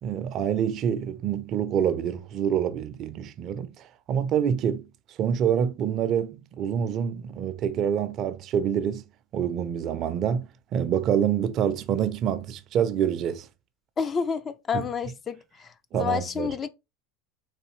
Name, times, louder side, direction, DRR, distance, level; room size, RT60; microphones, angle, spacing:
voice 1, 0.0-4.8 5.1-9.0 9.3-13.5 14.7-14.9 15.9-16.5, right 8 dB, 45° right, 0.4 m, -26 dB
voice 2, 14.0-16.7, left 6 dB, 30° left, 0.3 m, -29 dB
3.9 x 2.6 x 3.0 m
supercardioid pair, 105°, 0 cm